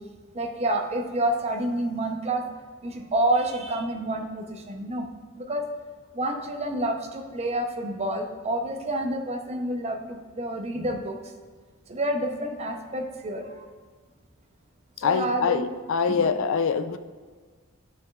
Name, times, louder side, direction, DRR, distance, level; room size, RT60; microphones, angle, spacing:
voice 1, 0.3-2.4 2.8-5.1 5.4-5.7 6.1-11.2 11.9-13.7 15.0-15.7 16.1-16.3, right 1 dB, 30° right, 4 dB, 0.6 m, -28 dB
voice 2, 15.0-17.0, left 6 dB, 65° left, 11 dB, 0.4 m, -24 dB
8.6 x 5.1 x 2.3 m, 1.5 s
head